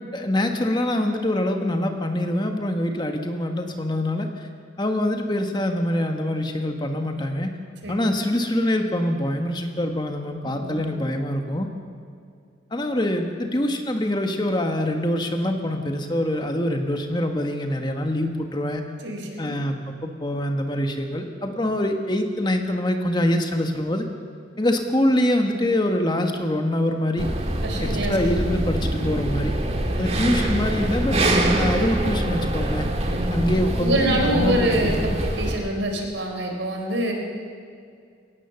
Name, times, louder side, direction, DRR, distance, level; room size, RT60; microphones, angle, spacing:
voice 1, 0.0-4.5 4.8-7.5 7.9-11.7 12.7-18.9 19.4-24.1 24.6-27.3 27.8-29.5 30.0-31.2 31.5-33.0 33.3-35.2, left 1 dB, 25° left, 4 dB, 1.4 m, -24 dB
voice 2, 7.8-8.1 10.4-10.9 19.0-19.5 27.6-28.2 28.5-28.7 29.9-30.2 33.1-33.4 33.8-37.1, right 1 dB, 75° right, 2 dB, 4.0 m, -26 dB
sound 1, 27.2-35.6, right 1 dB, 35° right, 1.9 m, -24 dB
21.5 x 18.0 x 6.9 m, 2.3 s
head